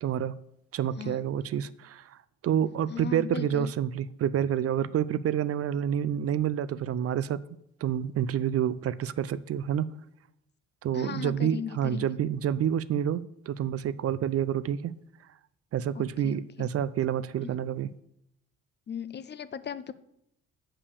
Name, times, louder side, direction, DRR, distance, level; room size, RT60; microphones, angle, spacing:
voice 1, 0.0-0.3 0.7-2.1 2.4-7.4 7.8-9.9 10.8-14.9 15.7-17.9, right 9 dB, 50° right, 16 dB, 0.4 m, -28 dB
voice 2, 2.9-3.7 10.9-12.1 15.9-16.7 18.9-19.9, left 8 dB, 35° left, 15 dB, 0.5 m, -37 dB
6.9 x 5.5 x 6.8 m, 0.78 s
cardioid pair, 90°, 30 cm